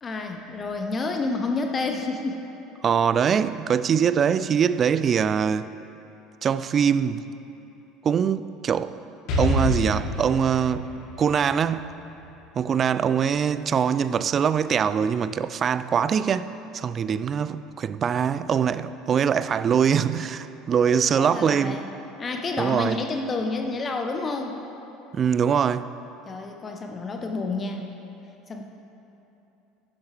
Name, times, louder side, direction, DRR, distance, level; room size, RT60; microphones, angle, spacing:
voice 1, 0.0-2.4 20.9-21.9 22.2-24.6 26.3-27.9 28.5-28.6, left 3 dB, 30° left, 0.8 m, -29 dB
voice 2, 2.8-5.7 6.4-7.3 8.0-8.9 9.4-10.9 11.2-11.9 12.5-21.8 22.6-23.0 25.1-25.9, right 7 dB, 40° right, 0.3 m, -23 dB
Explosion, 9.3-13.1, left 1 dB, 55° left, 1.9 m, -29 dB
11.5 x 10.5 x 3.3 m
hypercardioid pair, 70°, 0 cm